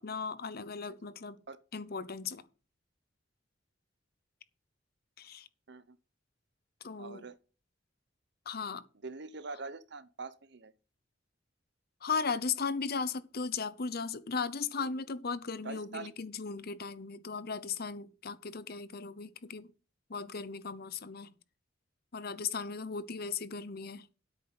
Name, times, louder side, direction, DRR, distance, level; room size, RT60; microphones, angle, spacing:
voice 1, 0.0-1.4 1.7-2.4 5.2-5.5 6.8-7.3 8.5-8.8 12.0-19.7 20.1-21.3 22.1-24.1, left 5 dB, 55° left, 0.9 m, -37 dB
voice 2, 7.0-7.4 9.0-10.7 14.8-14.9 15.6-16.1, right 4 dB, 65° right, 1.0 m, -44 dB
9.9 x 8.4 x 5.7 m
head